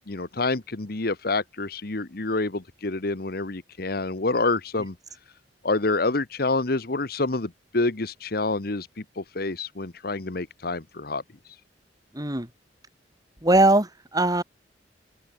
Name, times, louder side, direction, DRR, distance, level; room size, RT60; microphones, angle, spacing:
voice 1, 0.1-5.0 5.6-11.2, left 3 dB, 55° left, 1.3 m, -27 dB
voice 2, 12.1-12.5 13.4-14.4, right 2 dB, 20° right, 4.0 m, -20 dB
open air
head